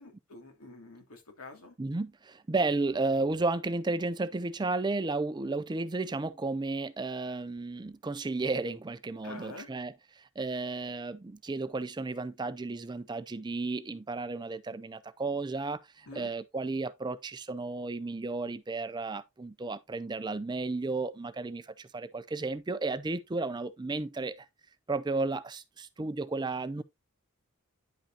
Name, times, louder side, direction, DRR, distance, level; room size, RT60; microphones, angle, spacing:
voice 1, 0.0-1.8 9.2-9.7 16.1-16.3, left 3 dB, 85° left, 2.5 m, -47 dB
voice 2, 1.8-2.1 2.5-9.9 10.4-15.8 16.2-21.6 21.9-24.3 24.9-26.8, right 3 dB, 20° right, 0.4 m, -33 dB
10.0 x 5.4 x 2.8 m
head